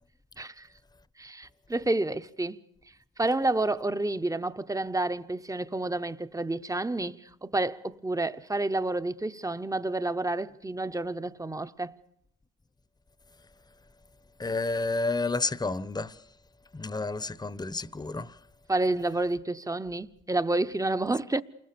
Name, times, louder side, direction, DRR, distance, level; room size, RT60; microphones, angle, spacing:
voice 1, 0.4-0.7 1.2-2.6 3.2-12.0 18.7-21.4, right 2 dB, 10° right, 0.9 m, -29 dB
voice 2, 14.4-16.2 16.7-18.4, left 3 dB, 15° left, 1.0 m, -30 dB
28.0 x 21.5 x 6.9 m
cardioid pair, 90°, 30 cm